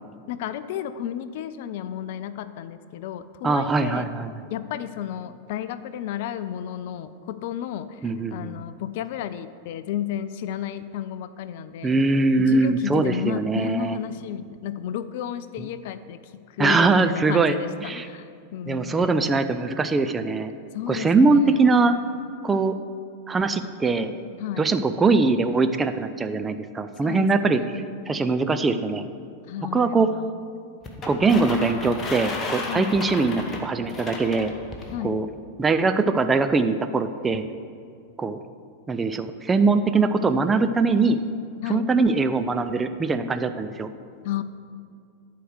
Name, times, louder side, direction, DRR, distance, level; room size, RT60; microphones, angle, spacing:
voice 1, 0.0-4.1 4.5-11.9 12.4-19.2 20.7-21.6 24.4-24.7 27.0-27.7 29.5-30.4 32.7-33.0 34.9-35.1 41.6-41.9 44.2-44.4, left 10 dB, 50° left, 13 dB, 0.4 m, -32 dB
voice 2, 3.4-4.3 8.0-8.6 11.8-14.0 15.6-15.7 16.6-17.5 17.8-18.1 18.7-20.5 20.9-22.0 22.4-22.8 23.3-24.1 24.6-27.6 28.1-29.1 29.7-30.1 31.1-34.5 35.0-35.3 35.6-37.5 38.2-38.4 38.9-41.2 41.7-43.9, right 3 dB, 15° right, 9 dB, 0.4 m, -22 dB
sound 1, 30.8-35.0, left 3 dB, 20° left, 1.1 m, -34 dB
11.0 x 4.7 x 6.3 m, 2.3 s
figure-of-eight pair, 90°, 0 cm